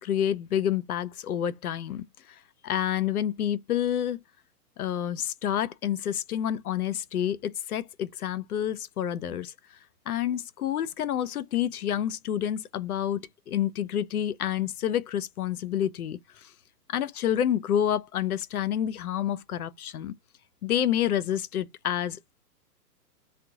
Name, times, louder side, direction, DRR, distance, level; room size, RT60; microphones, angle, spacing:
voice 1, 0.0-2.0 2.6-4.2 4.8-9.5 10.1-16.2 16.9-20.1 20.6-22.2, left 10 dB, 70° left, 0.6 m, -28 dB
3.5 x 2.3 x 2.8 m
figure-of-eight pair, 120°, 47 cm